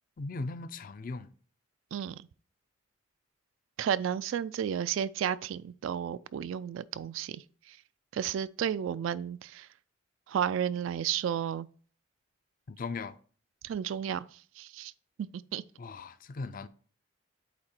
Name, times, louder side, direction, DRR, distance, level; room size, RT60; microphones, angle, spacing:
voice 1, 0.2-1.3 12.7-13.2 15.8-16.7, left 3 dB, 45° left, 0.4 m, -38 dB
voice 2, 1.9-2.3 3.8-7.8 8.1-9.7 10.3-11.7 13.6-14.9 15.2-15.6, right 9 dB, 80° right, 0.3 m, -33 dB
8.3 x 2.9 x 4.3 m
head